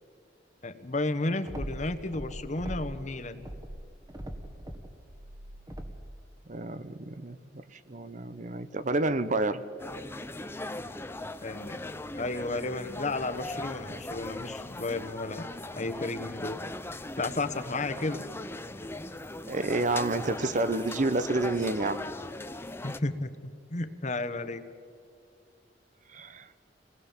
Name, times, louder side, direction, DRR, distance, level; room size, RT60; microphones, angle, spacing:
voice 1, 0.6-3.5 11.4-11.8 12.1-16.6 17.2-18.2 22.8-24.6, left 2 dB, 40° left, 1.2 m, -33 dB
sound 1, 1.4-3.1 3.4-6.1, right 1 dB, 20° right, 1.6 m, -40 dB
voice 2, 6.5-7.4 7.9-9.6 19.5-22.1 26.1-26.5, right 2 dB, 45° right, 0.9 m, -29 dB
sound 2, 9.8-23.0, left 2 dB, 15° left, 0.7 m, -39 dB
27.5 x 20.0 x 7.3 m
head